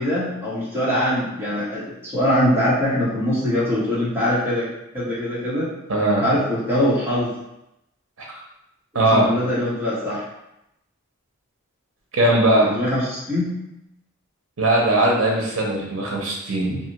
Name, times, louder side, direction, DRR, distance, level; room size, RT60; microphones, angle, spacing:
voice 1, 0.0-4.7 4.9-5.7 6.2-7.3 9.1-10.2 12.6-13.5, left 1 dB, 10° right, -9 dB, 1.0 m, -22 dB
voice 2, 5.9-6.3 8.2-8.3 8.9-9.3 12.1-12.7 14.6-16.8, right 1 dB, 70° right, -2 dB, 0.7 m, -19 dB
2.7 x 2.3 x 2.9 m, 0.85 s
head